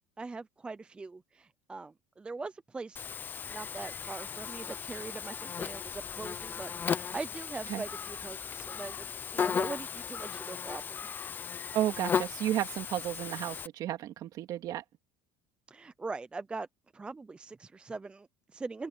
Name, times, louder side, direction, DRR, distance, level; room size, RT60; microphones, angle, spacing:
voice 1, 0.2-3.0 3.5-11.1 15.7-16.7 16.9-18.9, right 3 dB, 10° right, 0.5 m, -42 dB
Buzz, 3.0-13.7, left 6 dB, 20° left, 0.8 m, -36 dB
voice 2, 11.7-14.8, right 12 dB, 45° right, 2.3 m, -32 dB
open air
cardioid pair, 150°, 9 cm